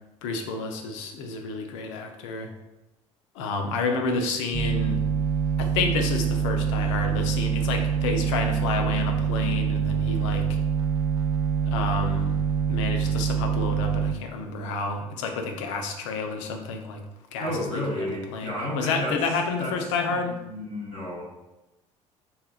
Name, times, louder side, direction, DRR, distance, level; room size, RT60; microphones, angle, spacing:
voice 1, 0.2-2.5 3.3-5.0 5.6-10.6 11.6-12.4 12.7-17.0 17.3-20.4, left 4 dB, 65° left, 4 dB, 0.5 m, -30 dB
sound 1, 4.5-14.1, right 7 dB, 30° right, 0.4 m, -25 dB
voice 2, 17.4-19.2 19.6-19.7 20.1-21.2, left 1 dB, 85° right, -8 dB, 1.5 m, -31 dB
3.4 x 2.8 x 2.3 m, 0.97 s
figure-of-eight pair, 60°, 17 cm